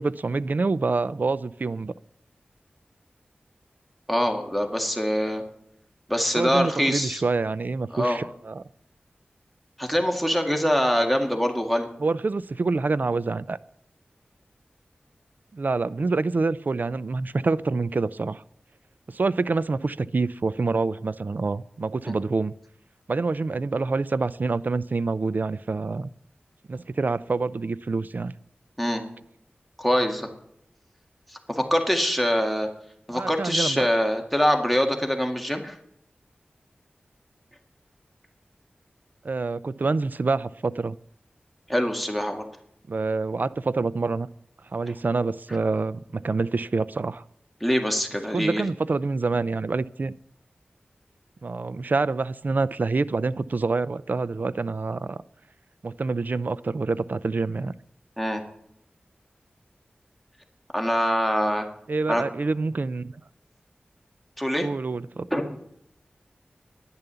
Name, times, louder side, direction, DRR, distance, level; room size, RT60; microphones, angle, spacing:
voice 1, 0.0-1.9 6.4-8.6 12.0-13.6 15.5-18.4 19.1-22.5 23.1-26.1 26.7-28.3 33.1-33.9 39.2-41.0 42.9-44.3 44.7-47.2 48.3-50.1 51.4-55.2 55.8-57.7 61.9-63.1 64.6-65.3, right 3 dB, 55° right, 0.5 m, -26 dB
voice 2, 4.1-5.4 6.1-7.2 7.9-8.2 9.8-11.9 22.0-22.1 28.8-29.0 29.8-30.3 31.5-32.7 33.1-35.8 41.7-42.4 47.6-48.6 58.2-58.4 60.7-61.7 62.1-62.2 64.4-64.7 65.3-65.5, equal, ahead, 1.9 m, -24 dB
10.5 x 10.5 x 6.8 m
wide cardioid pair, 55°, 4 cm